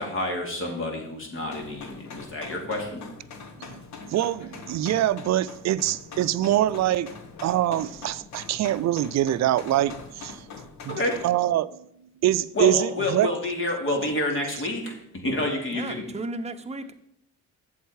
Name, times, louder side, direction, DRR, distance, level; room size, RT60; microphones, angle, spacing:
voice 1, 0.0-3.0 10.9-11.2 12.5-16.0, left 1 dB, 45° left, 2.5 m, -28 dB
sound 1, 1.5-11.3, left 4 dB, 65° left, 1.3 m, -43 dB
voice 2, 4.1-7.1 7.4-10.4 10.8-11.9 12.2-13.3, right 13 dB, 60° right, 0.5 m, -24 dB
voice 3, 15.7-16.9, right 2 dB, 20° right, 0.8 m, -34 dB
8.0 x 7.3 x 4.8 m
cardioid pair, 90°, 30 cm